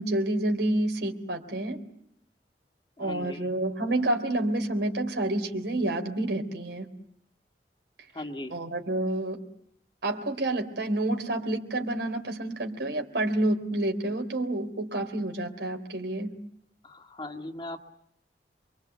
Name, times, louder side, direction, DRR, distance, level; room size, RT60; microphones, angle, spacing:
voice 1, 0.0-1.8 3.0-6.9 8.5-9.4 10.0-16.3, right 1 dB, 80° right, 4 dB, 3.5 m, -29 dB
voice 2, 3.0-3.5 8.1-8.6 16.8-17.8, left 1 dB, 30° left, 4 dB, 2.0 m, -38 dB
27.5 x 24.0 x 8.1 m, 0.71 s
head